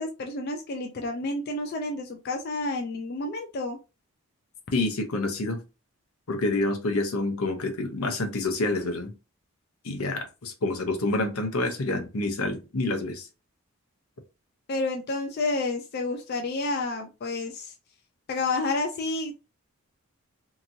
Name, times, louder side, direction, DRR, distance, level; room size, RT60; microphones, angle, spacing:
voice 1, 0.0-3.8 14.7-17.7 18.3-19.3, left 2 dB, 45° left, 3 dB, 0.4 m, -30 dB
voice 2, 4.7-5.6 6.3-9.1 9.8-13.3, left 2 dB, 80° left, 6 dB, 0.7 m, -28 dB
2.9 x 2.5 x 2.7 m, 0.29 s
head